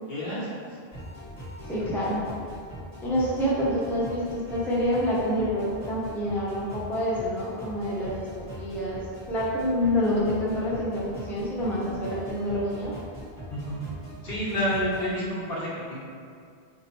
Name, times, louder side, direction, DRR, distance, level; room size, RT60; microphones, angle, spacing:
voice 1, 0.1-0.5 1.7-1.8 13.5-13.8 14.2-16.0, equal, 70° left, -8 dB, 1.3 m, -29 dB
sound 1, 0.9-15.1, equal, 30° left, 1.4 m, -41 dB
voice 2, 1.7-2.3 3.0-9.0 9.3-12.9, equal, ahead, -7 dB, 0.6 m, -27 dB
4.7 x 2.8 x 3.0 m, 2.3 s
omnidirectional pair, 1.0 m